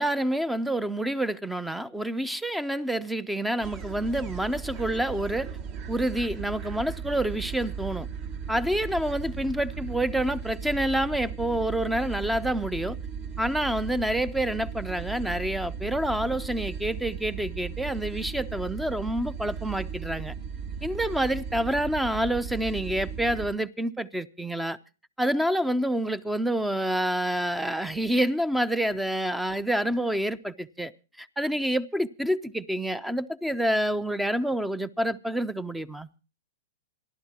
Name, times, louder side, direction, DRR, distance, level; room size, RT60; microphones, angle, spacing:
voice 1, 0.0-5.5 5.9-8.1 8.5-13.0 13.4-20.3 20.8-24.8 25.2-30.9 31.2-36.1, right 1 dB, 5° right, 0.6 m, -28 dB
sound 1, 3.6-23.5, right 6 dB, 40° right, 1.4 m, -36 dB
26.5 x 11.5 x 2.9 m
hypercardioid pair, 130°, 0 cm